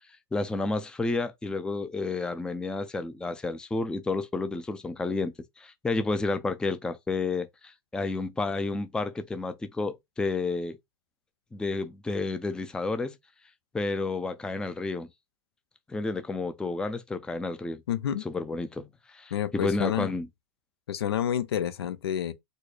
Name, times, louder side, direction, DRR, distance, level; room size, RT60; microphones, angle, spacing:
voice 1, 0.3-10.8 11.5-13.2 13.7-15.1 15.9-17.8 18.2-20.3, left 3 dB, 5° left, 0.4 m, -31 dB
voice 2, 17.9-18.2 19.3-20.1 20.9-22.3, left 10 dB, 80° left, 0.6 m, -29 dB
4.2 x 2.1 x 3.1 m
hypercardioid pair, 110°, 13 cm